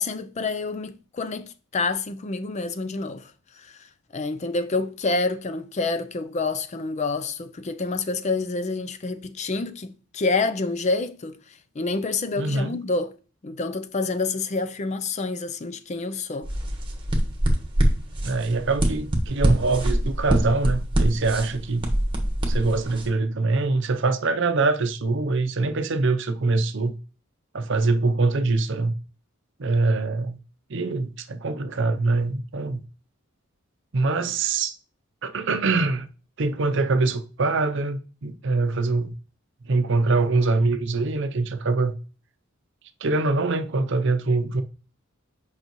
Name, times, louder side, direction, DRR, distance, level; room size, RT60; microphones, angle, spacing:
voice 1, 0.0-3.9 4.1-13.1 13.4-16.5, left 3 dB, 35° left, 0.4 m, -28 dB
voice 2, 12.4-12.8 18.2-21.9 22.5-27.0 27.5-28.9 29.6-30.4 30.7-32.8 33.9-34.8 35.2-36.1 36.4-39.1 39.6-42.0 43.0-44.6, right 3 dB, 60° right, 0.6 m, -24 dB
sound 1, 16.4-23.1, right 1 dB, 25° right, 1.3 m, -24 dB
8.0 x 5.5 x 3.0 m
head